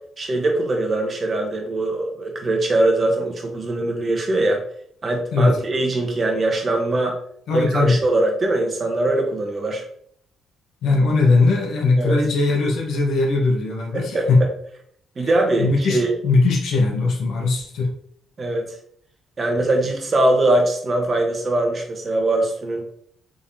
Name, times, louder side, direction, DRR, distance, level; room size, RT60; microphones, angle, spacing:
voice 1, 0.2-4.6 5.0-7.2 7.5-9.8 12.0-12.2 13.9-14.3 15.2-16.1 18.4-18.6 19.4-22.8, right 2 dB, 35° right, 2 dB, 1.0 m, -21 dB
voice 2, 7.5-8.0 10.8-14.4 15.2-15.3 15.6-17.9, left 3 dB, 75° left, -1 dB, 1.0 m, -19 dB
3.7 x 3.5 x 2.7 m, 0.64 s
cardioid pair, 90°, 0 cm